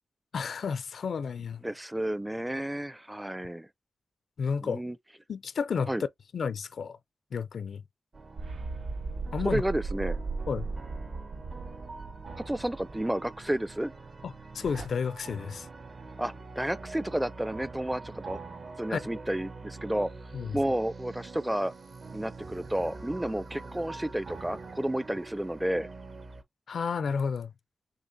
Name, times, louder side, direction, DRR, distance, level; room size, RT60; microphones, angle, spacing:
voice 1, 0.3-1.6 4.4-4.8 5.3-5.9 6.3-7.0 7.3-7.8 9.3-9.6 10.5-10.7 14.2-15.7 18.9-19.0 20.3-20.6 26.7-27.5, left 6 dB, 75° left, 0.4 m, -31 dB
voice 2, 1.6-3.7 4.6-5.0 5.9-6.0 9.4-10.2 12.5-13.9 16.2-18.4 18.8-20.1 20.5-21.7 22.1-25.9, right 1 dB, 10° right, 0.5 m, -31 dB
sound 1, 8.1-26.4, right 3 dB, 50° right, 1.1 m, -45 dB
sound 2, 8.4-13.3 14.6-14.9, right 3 dB, 80° right, 0.8 m, -37 dB
6.5 x 2.8 x 2.6 m
cardioid pair, 50°, 0 cm